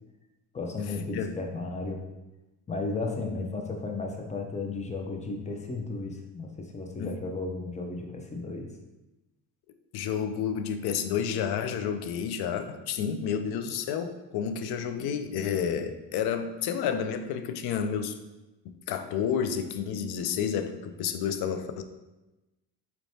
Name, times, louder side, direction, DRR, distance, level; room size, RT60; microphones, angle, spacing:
voice 1, 0.5-2.0 2.7-8.7 15.0-15.2, left 3 dB, 15° left, 3 dB, 0.6 m, -34 dB
voice 2, 9.9-18.2 18.7-21.8, left 7 dB, 65° left, 8 dB, 0.5 m, -30 dB
4.2 x 3.2 x 2.7 m, 1.0 s
cardioid pair, 95°, 42 cm